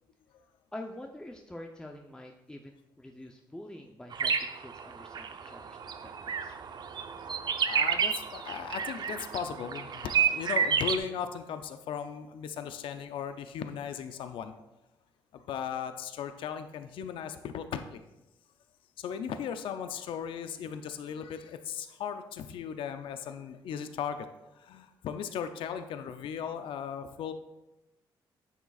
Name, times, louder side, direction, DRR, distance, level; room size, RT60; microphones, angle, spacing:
voice 1, 0.7-6.5, left 1 dB, 10° left, 2 dB, 0.6 m, -46 dB
sound 1, 4.1-11.0, right 7 dB, 55° right, 0.6 m, -30 dB
voice 2, 7.6-14.5 15.3-18.0 19.0-24.3 24.5-27.3, left 8 dB, 75° left, 9 dB, 0.5 m, -37 dB
9.8 x 7.1 x 2.4 m, 0.94 s
cardioid pair, 75°, 9 cm